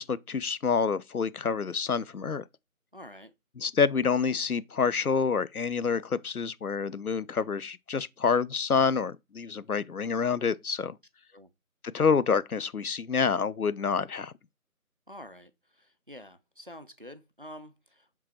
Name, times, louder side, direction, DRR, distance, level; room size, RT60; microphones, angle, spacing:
voice 1, 0.0-2.4 3.6-11.0 11.9-14.3, left 5 dB, 75° left, 0.8 m, -27 dB
voice 2, 2.9-3.3 11.3-11.5 15.1-18.2, left 1 dB, 40° right, 0.6 m, -48 dB
7.5 x 3.9 x 4.4 m
figure-of-eight pair, 165°, 44 cm